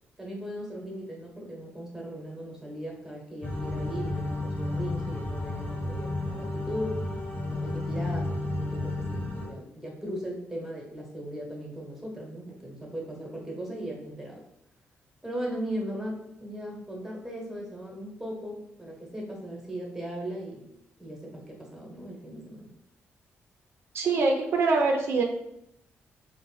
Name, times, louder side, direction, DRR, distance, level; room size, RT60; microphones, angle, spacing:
voice 1, 0.2-7.0 7.5-14.4 15.2-20.6 21.0-22.7, equal, 5° right, -1 dB, 0.8 m, -38 dB
sound 1, 3.4-9.5, left 2 dB, 45° left, 0.9 m, -32 dB
voice 2, 23.9-25.2, right 3 dB, 65° right, 2 dB, 0.4 m, -24 dB
2.5 x 2.0 x 3.1 m, 0.79 s
cardioid pair, 85°, 5 cm